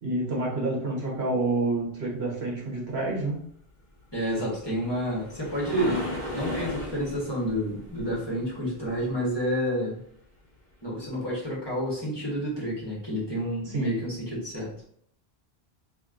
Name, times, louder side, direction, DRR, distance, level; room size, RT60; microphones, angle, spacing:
voice 1, 0.0-3.4 13.7-13.9, right 2 dB, 70° right, -2 dB, 1.3 m, -28 dB
voice 2, 4.1-10.0 10.8-14.7, equal, 25° left, -6 dB, 1.3 m, -29 dB
sound 1, 4.3-9.5 13.4-13.5 14.1-14.2, left 1 dB, 45° left, 1.3 m, -36 dB
4.3 x 3.0 x 2.5 m, 0.64 s
omnidirectional pair, 1.1 m